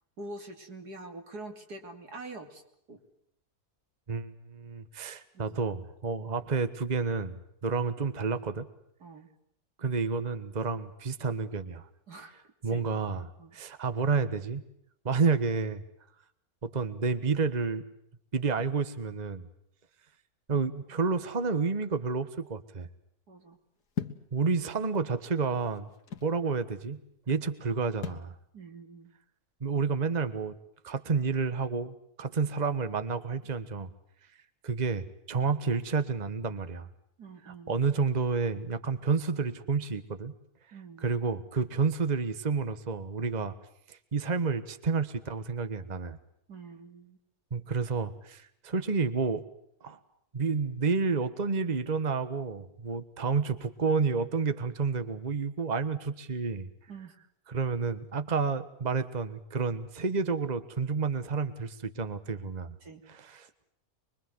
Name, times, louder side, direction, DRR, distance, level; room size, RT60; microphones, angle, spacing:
voice 1, 0.2-2.6 2.9-3.0 5.3-5.4 9.0-9.3 12.1-12.3 12.6-12.8 13.4-13.6 23.3-23.6 28.5-29.1 37.2-37.8 40.7-41.2 46.5-47.2 56.9-57.1 62.8-63.0, right 2 dB, 85° right, 5 dB, 3.5 m, -45 dB
voice 2, 4.1-8.7 9.8-11.9 12.6-14.6 15.0-15.8 16.6-17.8 18.3-19.4 20.5-22.9 24.3-25.9 26.2-27.0 27.3-28.3 29.6-30.6 30.8-33.9 34.6-36.9 37.4-40.3 41.0-43.5 43.9-46.2 47.5-49.4 49.8-50.0 50.3-56.7 57.5-62.7 63.1-63.6, right 4 dB, 30° right, 11 dB, 1.4 m, -30 dB
sound 1, 24.0-24.3 25.2-26.4 28.0-28.3, left 7 dB, 90° left, 2.2 m, -37 dB
24.5 x 23.0 x 7.8 m, 0.73 s
omnidirectional pair, 1.6 m